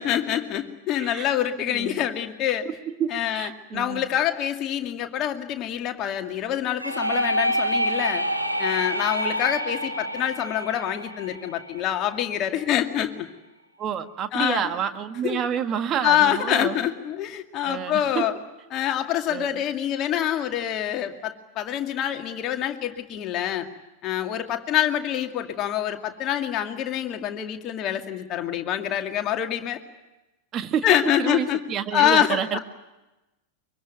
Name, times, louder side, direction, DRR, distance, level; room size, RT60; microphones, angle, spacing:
voice 1, 0.0-2.7 3.1-8.2 8.6-13.3 14.3-14.7 15.2-15.4 16.0-18.4 18.7-23.7 24.0-29.8 30.8-31.6 31.9-32.6, left 11 dB, 35° left, 5 dB, 2.3 m, -26 dB
voice 2, 1.7-2.0 2.5-2.6 3.0-4.1 13.8-16.7 17.6-18.2 19.3-19.6 30.5-30.9 31.2-32.6, right 9 dB, 30° right, 8 dB, 1.8 m, -29 dB
sound 1, 6.8-12.4, equal, 90° right, 1.8 m, -27 dB
24.0 x 24.0 x 9.2 m, 1.0 s
figure-of-eight pair, 90°, 0 cm